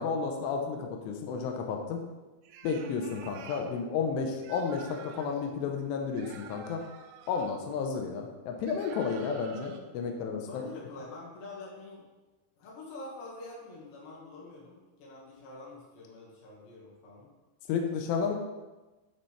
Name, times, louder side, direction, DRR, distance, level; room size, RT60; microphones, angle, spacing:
voice 1, 0.0-2.0 2.6-6.8 7.3-10.6 17.7-18.4, left 5 dB, 90° left, 2 dB, 2.4 m, -32 dB
sound 1, 2.4-3.7 4.4-5.4 6.1-7.6 8.6-9.8, right 6 dB, 85° right, 3.2 m, -49 dB
voice 2, 10.5-12.0 12.6-17.3, left 2 dB, 65° left, -4 dB, 3.7 m, -46 dB
11.0 x 4.3 x 3.3 m, 1.1 s
omnidirectional pair, 6.0 m